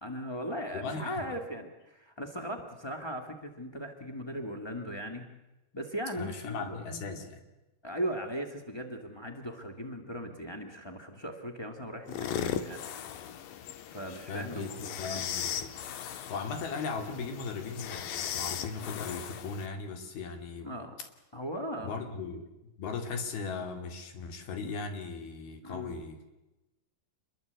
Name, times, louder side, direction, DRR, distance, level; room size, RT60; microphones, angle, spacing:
voice 1, 0.0-5.3 5.7-7.2 7.8-12.8 13.9-15.2 20.6-20.9 21.3-21.9 25.6-25.9, equal, 35° left, 2 dB, 0.4 m, -38 dB
voice 2, 0.7-1.4 6.2-7.4 14.1-15.7 16.3-20.7 21.8-26.2, left 4 dB, 90° left, 6 dB, 4.4 m, -38 dB
sound 1, 12.1-19.7, left 9 dB, 70° left, 2.8 m, -38 dB
27.0 x 22.5 x 8.0 m, 1.0 s
omnidirectional pair, 4.2 m